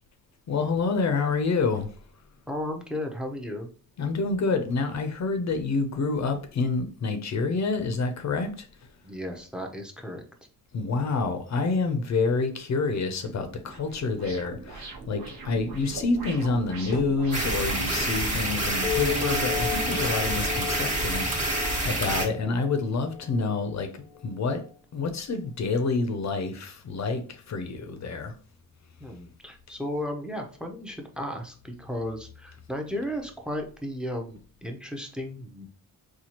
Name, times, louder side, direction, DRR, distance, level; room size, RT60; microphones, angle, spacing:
voice 1, 0.5-1.9 4.0-8.7 10.7-24.6 24.9-28.3, left 4 dB, 50° left, 0.5 m, -28 dB
voice 2, 2.5-3.7 9.0-10.2 29.0-35.7, left 1 dB, ahead, 0.5 m, -34 dB
sound 1, 13.1-18.1, right 3 dB, 70° right, 1.0 m, -41 dB
sound 2, 17.3-22.3, right 1 dB, 20° right, 1.0 m, -27 dB
sound 3, 18.8-23.8, left 6 dB, 85° left, 0.7 m, -34 dB
4.2 x 2.3 x 2.8 m
wide cardioid pair, 140°, 36 cm